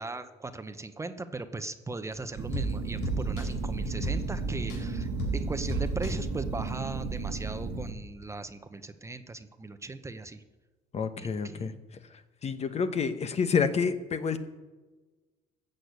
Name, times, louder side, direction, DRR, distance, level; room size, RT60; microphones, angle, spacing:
voice 1, 0.0-10.4 11.2-11.8, right 3 dB, 15° right, 10 dB, 0.8 m, -38 dB
sound 1, 2.1-7.3 7.7-7.8, right 1 dB, 75° left, 4.1 m, -36 dB
sound 2, 2.4-7.9, right 4 dB, 70° right, 1.4 m, -34 dB
voice 2, 10.9-11.7 12.4-14.4, left 5 dB, 40° left, 10 dB, 1.0 m, -29 dB
14.5 x 6.6 x 8.1 m, 1.3 s
cardioid pair, 110°, 17 cm